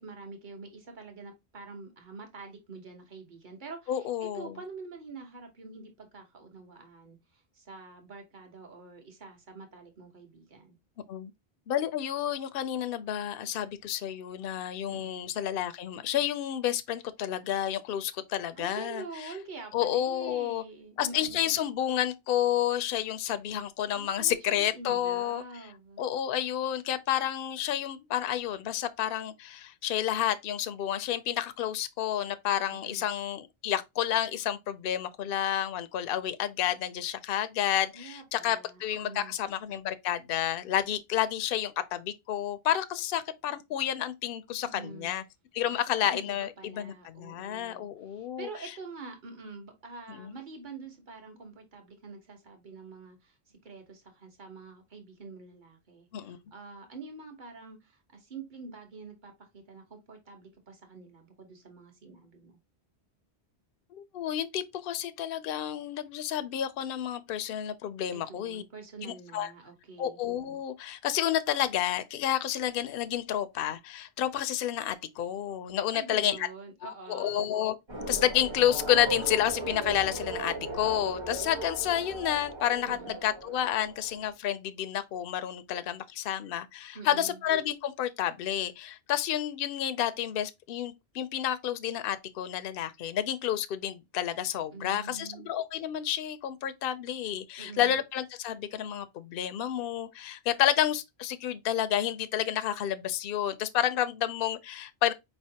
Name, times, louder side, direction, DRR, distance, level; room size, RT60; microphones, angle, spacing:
voice 1, 0.0-10.8 14.9-15.3 18.6-21.5 23.9-26.0 32.7-33.0 37.9-39.3 44.6-45.1 45.7-62.6 68.1-70.2 75.9-77.5 82.8-83.2 86.9-87.4 94.7-95.5 97.6-98.0, right 4 dB, 45° right, 1.3 m, -46 dB
voice 2, 3.9-4.5 11.1-11.3 11.7-19.0 19.7-20.6 21.0-25.4 26.0-45.2 45.5-48.5 50.1-50.3 56.1-56.4 63.9-68.6 69.0-69.5 70.0-76.4 76.8-77.7 78.1-105.1, left 11 dB, 65° left, 0.7 m, -30 dB
sound 1, 77.9-84.2, right 2 dB, 25° right, 1.1 m, -37 dB
4.9 x 3.2 x 2.8 m
omnidirectional pair, 1.1 m